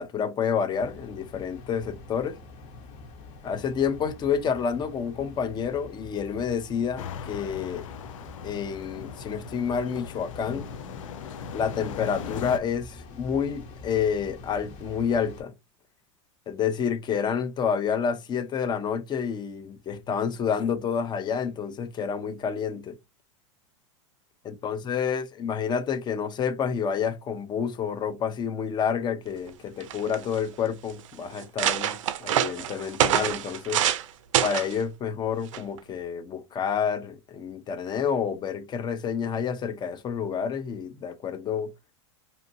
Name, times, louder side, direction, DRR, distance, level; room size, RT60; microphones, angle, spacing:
voice 1, 0.0-2.4 3.4-7.9 8.4-10.7 11.5-15.5 16.5-23.0 24.4-33.8 34.4-41.7, left 7 dB, 25° left, 0.6 m, -29 dB
sound 1, 0.7-15.4, left 3 dB, 45° left, 1.1 m, -45 dB
sound 2, 7.0-12.6, left 6 dB, 80° left, 0.6 m, -39 dB
sound 3, 29.5-29.6 29.8-30.4 31.0-31.1 31.4-34.1 34.3-34.8 35.5-35.8, right 11 dB, 80° right, 0.4 m, -26 dB
2.7 x 2.6 x 2.7 m
hypercardioid pair, 110°, 16 cm